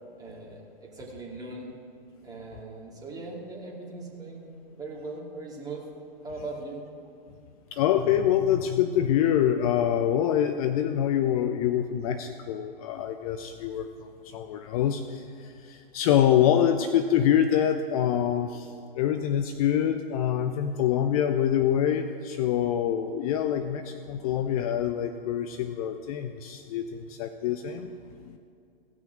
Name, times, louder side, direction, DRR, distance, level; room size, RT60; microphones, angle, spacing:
voice 1, 0.2-1.7 2.2-5.8 6.2-6.8, right 3 dB, 15° right, -3 dB, 2.6 m, -40 dB
voice 2, 7.7-28.0 28.3-28.4, left 10 dB, 40° left, 9 dB, 0.5 m, -25 dB
16.5 x 6.1 x 6.3 m, 2.5 s
figure-of-eight pair, 110°, 29 cm